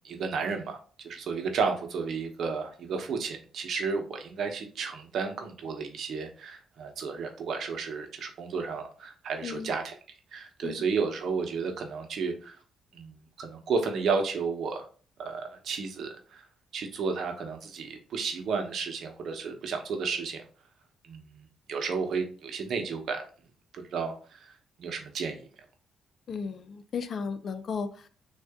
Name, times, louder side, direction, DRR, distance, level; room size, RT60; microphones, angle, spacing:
voice 1, 0.0-10.0 10.3-12.6 12.9-14.9 15.2-16.4 16.7-20.4 21.0-23.2 23.7-24.5 24.8-25.5, right 5 dB, 65° right, 4 dB, 0.9 m, -32 dB
voice 2, 9.4-9.7 10.6-10.8 26.3-28.1, left 5 dB, 55° left, 12 dB, 0.4 m, -35 dB
3.7 x 2.5 x 3.5 m, 0.40 s
cardioid pair, 90°, 0 cm